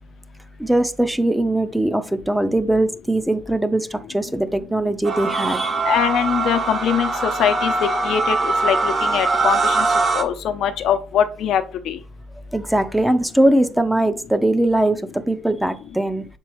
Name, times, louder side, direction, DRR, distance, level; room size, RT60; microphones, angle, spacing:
voice 1, 0.6-5.8 12.5-16.3, right 1 dB, 5° right, 0.7 m, -20 dB
sound 1, 5.0-10.2, right 3 dB, 40° right, 1.0 m, -22 dB
voice 2, 5.9-7.7 8.0-9.8 10.1-12.0, left 8 dB, 80° left, 0.7 m, -22 dB
6.7 x 4.5 x 3.2 m
cardioid pair, 90°, 0 cm